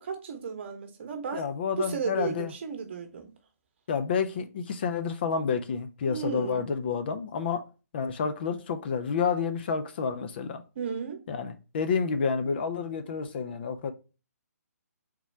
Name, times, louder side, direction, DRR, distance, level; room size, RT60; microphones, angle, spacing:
voice 1, 0.0-1.5 1.8-3.3 6.1-6.7 10.8-11.2, right 6 dB, 45° right, 1.0 m, -34 dB
voice 2, 1.3-2.5 3.9-7.6 7.9-10.6 11.3-13.9, left 6 dB, 40° left, 0.5 m, -29 dB
3.7 x 3.0 x 4.2 m
figure-of-eight pair, 135°, 9 cm